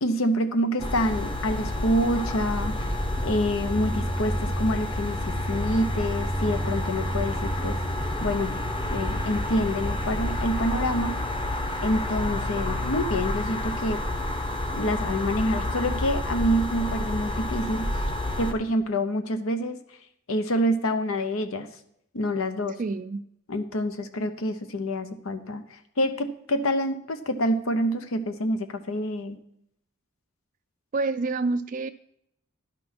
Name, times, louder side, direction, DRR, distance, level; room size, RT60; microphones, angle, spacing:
voice 1, 0.0-2.7 3.2-7.8 8.2-8.6 8.9-11.2 11.8-14.0 14.7-18.1 18.4-19.8 20.3-21.7 22.1-22.8 23.5-29.4, equal, 75° left, 9 dB, 0.8 m, -27 dB
sound 1, 0.8-18.5, left 1 dB, 25° left, 1.0 m, -29 dB
voice 2, 22.8-23.2 30.9-31.9, right 3 dB, 40° right, 10 dB, 0.3 m, -27 dB
11.5 x 6.1 x 6.0 m, 0.73 s
head